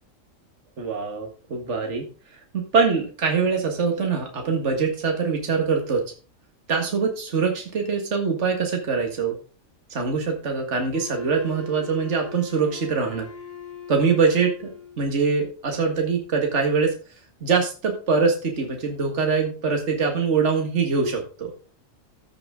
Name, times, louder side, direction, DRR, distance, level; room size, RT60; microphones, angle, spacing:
voice 1, 0.8-2.1 2.5-6.0 6.7-9.4 9.9-13.3 13.9-16.9 17.4-21.5, right 5 dB, 60° right, 3 dB, 2.1 m, -23 dB
Wind instrument woodwind instrument, 10.9-15.1, left 6 dB, 35° left, 1.9 m, -40 dB
13.5 x 7.1 x 3.7 m, 0.35 s
omnidirectional pair, 1.4 m